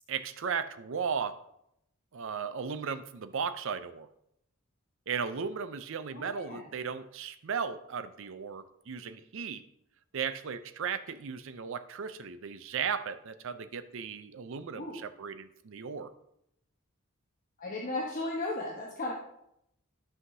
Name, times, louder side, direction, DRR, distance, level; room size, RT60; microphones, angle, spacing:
voice 1, 0.1-1.4 2.1-4.1 5.1-9.6 10.1-16.1, right 6 dB, 65° right, 11 dB, 0.5 m, -36 dB
voice 2, 6.1-6.6 14.7-15.0 17.6-19.1, left 2 dB, 40° left, -3 dB, 1.1 m, -35 dB
12.5 x 5.7 x 2.7 m, 0.78 s
head